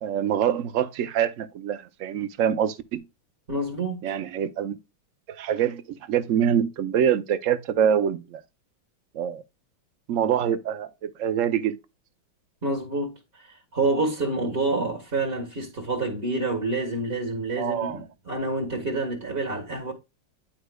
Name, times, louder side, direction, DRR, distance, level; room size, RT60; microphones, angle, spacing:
voice 1, 0.0-3.0 4.0-4.8 5.3-8.4 9.1-9.4 10.1-11.8 17.6-18.0, right 9 dB, 70° right, 0.7 m, -25 dB
voice 2, 3.5-4.0 12.6-19.9, right 2 dB, 30° right, 1.7 m, -28 dB
10.0 x 4.9 x 2.3 m
omnidirectional pair, 2.2 m